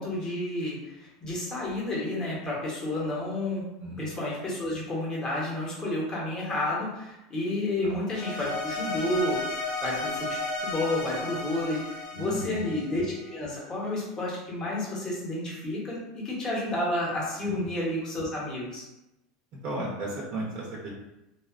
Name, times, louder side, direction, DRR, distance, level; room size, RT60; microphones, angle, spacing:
voice 1, 0.0-3.6 4.0-18.8, left 1 dB, 25° left, -5 dB, 0.9 m, -31 dB
sound 1, 8.1-13.4, left 2 dB, 50° left, 0.6 m, -34 dB
voice 2, 12.1-12.7 17.4-17.6 19.6-20.9, right 1 dB, 50° right, -3 dB, 0.6 m, -34 dB
2.6 x 2.2 x 2.4 m, 0.93 s
supercardioid pair, 145°, 3 cm